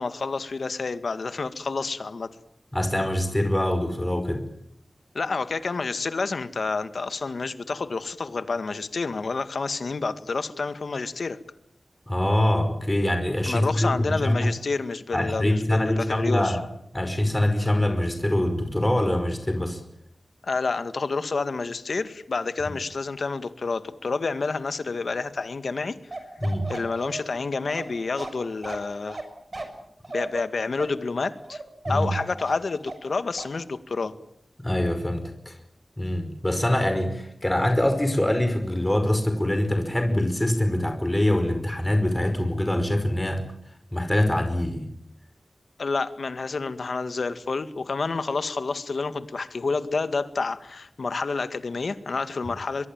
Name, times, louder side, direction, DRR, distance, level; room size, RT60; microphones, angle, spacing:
voice 1, 0.0-2.3 5.1-11.4 13.5-16.6 20.4-26.0 26.7-29.2 30.1-31.6 31.9-34.1 45.8-52.9, left 4 dB, 80° left, 11 dB, 1.9 m, -29 dB
voice 2, 2.7-4.4 12.1-14.5 15.1-16.6 16.9-19.8 26.4-26.7 31.9-32.1 34.6-35.6 36.0-43.4 43.9-44.8, left 1 dB, 15° left, 6 dB, 5.2 m, -24 dB
Bark, 26.1-33.1 33.4-33.6, right 2 dB, 45° right, 6.4 m, -36 dB
24.5 x 23.0 x 8.9 m, 0.72 s
wide cardioid pair, 80°, 0 cm